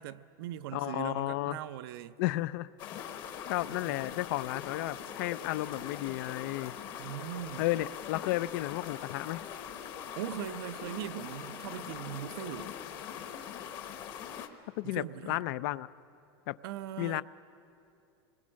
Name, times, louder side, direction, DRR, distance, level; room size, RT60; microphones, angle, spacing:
voice 1, 0.0-2.1 3.7-4.0 7.0-7.6 10.2-12.8 14.8-15.4 16.6-17.2, right 12 dB, 70° right, 0.6 m, -40 dB
voice 2, 0.7-1.6 2.2-2.7 3.5-6.7 7.6-9.4 14.8-15.9 16.5-16.6 17.0-17.2, left 17 dB, 55° left, 0.4 m, -33 dB
sound 1, 2.8-14.5, left 8 dB, 35° left, 1.1 m, -42 dB
26.5 x 21.0 x 6.3 m
supercardioid pair, 165°, 13 cm